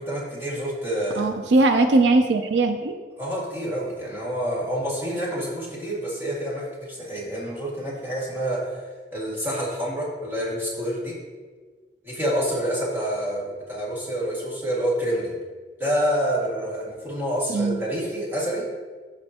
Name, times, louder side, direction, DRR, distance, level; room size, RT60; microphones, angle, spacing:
voice 1, 0.0-1.3 3.2-8.7 9.1-11.1 12.0-15.4 15.8-18.6, equal, 15° right, -6 dB, 1.9 m, -27 dB
voice 2, 1.2-2.9 17.5-17.8, right 2 dB, 80° right, 7 dB, 0.5 m, -20 dB
13.0 x 4.4 x 2.8 m, 1.4 s
head